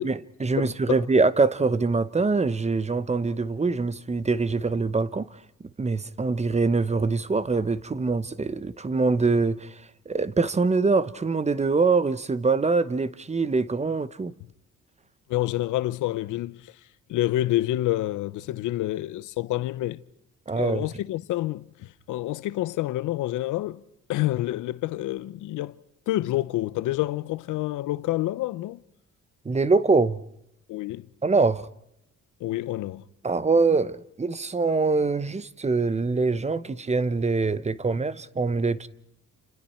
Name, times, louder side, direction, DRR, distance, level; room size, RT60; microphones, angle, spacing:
voice 1, 0.0-5.3 5.8-14.3 20.5-20.9 29.4-30.2 31.2-31.7 33.2-38.9, right 4 dB, 20° right, 0.9 m, -24 dB
voice 2, 0.6-1.0 15.3-16.8 17.1-20.0 20.5-23.8 24.1-25.8 26.1-28.8 30.7-31.1 32.4-33.0, left 15 dB, 85° left, 0.8 m, -28 dB
29.0 x 29.0 x 4.5 m
cardioid pair, 90°, 30 cm